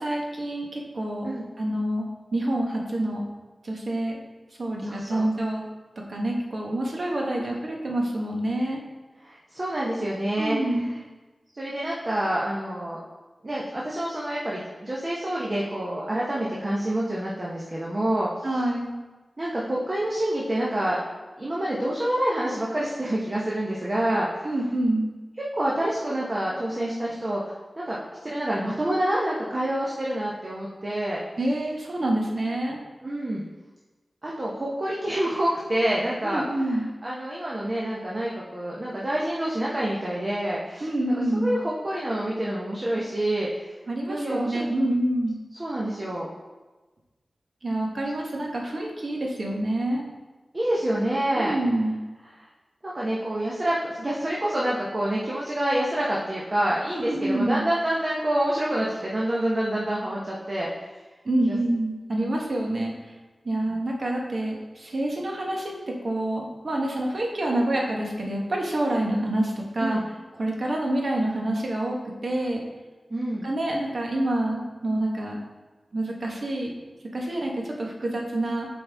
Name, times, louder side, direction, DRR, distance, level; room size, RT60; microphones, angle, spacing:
voice 1, 0.0-1.3 1.6-2.1 2.3-3.2 3.6-4.2 4.6-5.6 6.1-8.8 10.4-10.9 18.4-18.9 24.4-25.1 31.4-32.8 36.2-36.9 40.8-41.6 43.9-45.4 47.6-50.0 51.3-52.0 57.0-57.7 61.2-62.9 63.4-70.0 70.4-72.0 72.2-72.6 73.4-75.4 75.9-76.7 77.1-78.7, right 1 dB, 65° right, -1 dB, 1.2 m, -27 dB
voice 2, 4.8-5.3 9.2-10.6 11.5-13.0 13.4-18.3 19.4-21.0 21.4-24.3 25.6-27.5 27.9-31.2 33.0-33.4 34.2-36.4 37.0-40.9 41.3-43.5 44.1-44.7 45.6-46.3 50.5-51.5 52.8-60.7 61.5-61.6 63.7-63.8 69.8-70.0 73.1-73.5, right 1 dB, 40° right, -5 dB, 1.0 m, -27 dB
7.6 x 4.2 x 3.5 m, 1.2 s
wide cardioid pair, 65°, 0 cm